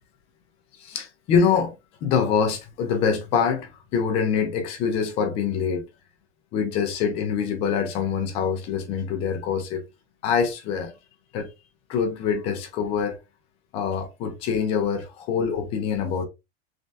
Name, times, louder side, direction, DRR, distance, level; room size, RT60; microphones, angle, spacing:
voice 1, 0.8-1.7 2.0-5.8 6.5-9.8 10.2-10.9 11.3-11.5 11.9-13.2 13.7-16.2, left 6 dB, 20° left, 0.3 m, -25 dB
3.3 x 2.2 x 2.6 m
supercardioid pair, 150°, 33 cm